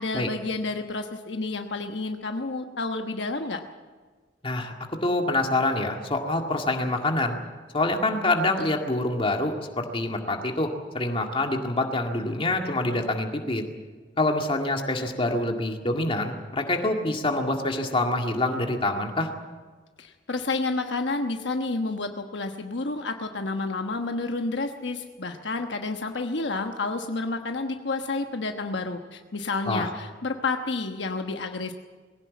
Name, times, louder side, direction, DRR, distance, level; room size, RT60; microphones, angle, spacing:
voice 1, 0.0-3.6 20.0-31.7, left 3 dB, 65° left, 5 dB, 1.2 m, -30 dB
voice 2, 5.0-7.4 7.7-13.6 14.2-19.3 29.7-29.9, left 2 dB, 30° left, 3 dB, 2.1 m, -26 dB
20.5 x 17.0 x 8.5 m, 1.4 s
head